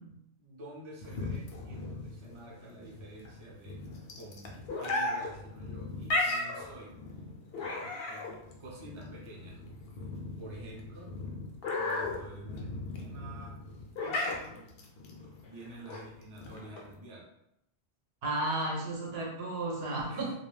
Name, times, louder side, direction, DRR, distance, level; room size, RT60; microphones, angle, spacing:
voice 1, 0.4-3.8 4.1-4.5 4.8-6.9 7.5-9.6 10.4-11.1 11.8-13.6 13.9-14.7 15.4-17.3 20.1-20.3, right 1 dB, 35° right, -4 dB, 0.6 m, -49 dB
sound 1, 1.0-17.0, left 2 dB, 65° left, 0.7 m, -36 dB
voice 2, 18.2-20.3, right 2 dB, 70° right, -2 dB, 0.8 m, -33 dB
2.3 x 2.1 x 3.2 m, 0.80 s
omnidirectional pair, 1.1 m